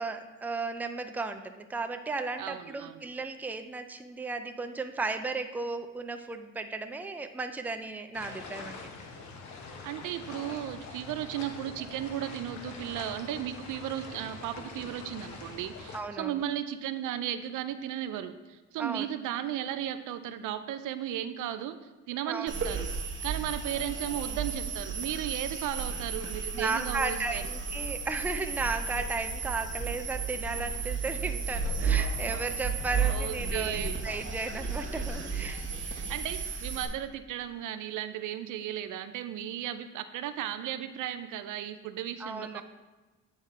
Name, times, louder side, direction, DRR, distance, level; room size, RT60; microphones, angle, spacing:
voice 1, 0.0-8.8 15.9-16.4 18.8-19.1 22.2-22.5 26.5-35.6 42.2-42.6, right 3 dB, 5° right, 7 dB, 0.4 m, -35 dB
voice 2, 2.4-3.0 9.8-21.8 22.1-22.9 23.2-27.4 33.0-34.0 35.9-42.6, right 11 dB, 85° right, 11 dB, 0.5 m, -35 dB
sound 1, 8.1-16.0, left 4 dB, 70° left, 1.0 m, -44 dB
sound 2, 22.5-36.9, right 5 dB, 40° right, 1.0 m, -33 dB
9.1 x 3.7 x 4.2 m, 1.2 s
cardioid pair, 90°, 30 cm